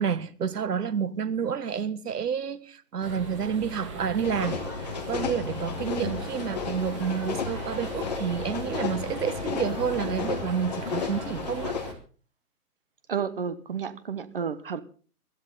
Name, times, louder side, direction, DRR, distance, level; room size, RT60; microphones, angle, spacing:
voice 1, 0.0-4.6 5.1-11.8, right 7 dB, 85° right, 1.5 m, -29 dB
sound 1, 3.0-11.9, right 2 dB, 20° right, 2.0 m, -39 dB
sound 2, 4.2-11.9, left 6 dB, 25° left, 1.6 m, -33 dB
voice 2, 13.1-14.8, right 7 dB, 35° right, 1.0 m, -31 dB
20.5 x 13.5 x 3.9 m
hypercardioid pair, 180°, 46 cm